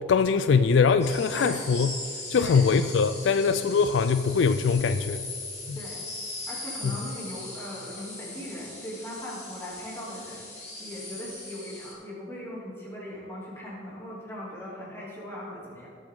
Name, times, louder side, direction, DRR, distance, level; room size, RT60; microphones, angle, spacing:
voice 1, 0.0-2.0 2.3-5.2 5.7-5.8 6.8-7.0, left 5 dB, 70° left, 11 dB, 0.4 m, -22 dB
sound 1, 1.0-11.9, left 2 dB, 35° left, 2.8 m, -39 dB
voice 2, 1.3-1.6 2.4-2.7 5.7-6.0 6.5-15.9, equal, 15° left, -6 dB, 2.9 m, -39 dB
17.0 x 7.6 x 3.8 m, 2.3 s
head